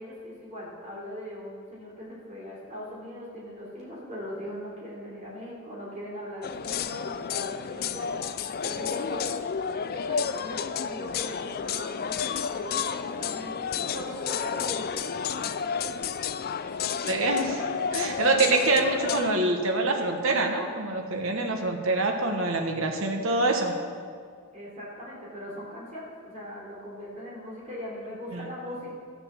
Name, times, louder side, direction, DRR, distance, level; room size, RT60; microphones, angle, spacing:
voice 1, 0.0-8.1 8.6-9.2 9.7-13.7 13.9-15.1 15.3-15.6 24.5-29.0, equal, 30° right, -5 dB, 3.4 m, -40 dB
sound 1, 6.4-19.3, left 7 dB, 45° left, 0.4 m, -31 dB
voice 2, 17.0-17.6 17.9-23.7 28.3-28.5, right 2 dB, 60° right, 3 dB, 1.2 m, -25 dB
12.5 x 7.1 x 7.2 m, 2.1 s
head